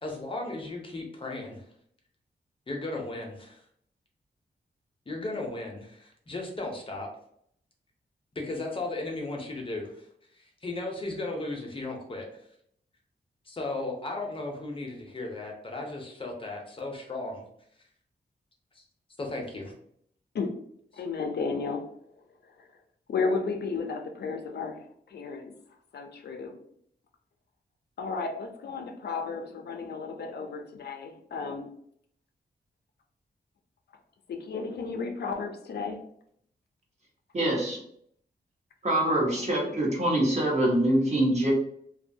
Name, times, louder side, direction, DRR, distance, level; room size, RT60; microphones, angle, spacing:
voice 1, 0.0-1.6 2.7-3.6 5.1-7.1 8.3-10.0 10.3-12.3 13.5-17.4 18.7-18.8 19.2-19.7, left 2 dB, 30° left, 0 dB, 0.6 m, -35 dB
voice 2, 21.0-21.8 22.6-22.7 23.1-25.5 25.9-26.6 28.0-31.7 34.3-36.0 39.4-39.8, left 4 dB, 75° left, 4 dB, 0.4 m, -33 dB
voice 3, 37.3-37.8 38.8-41.5, right 1 dB, 40° right, -3 dB, 0.9 m, -24 dB
2.6 x 2.2 x 2.6 m, 0.68 s
wide cardioid pair, 125°, 17 cm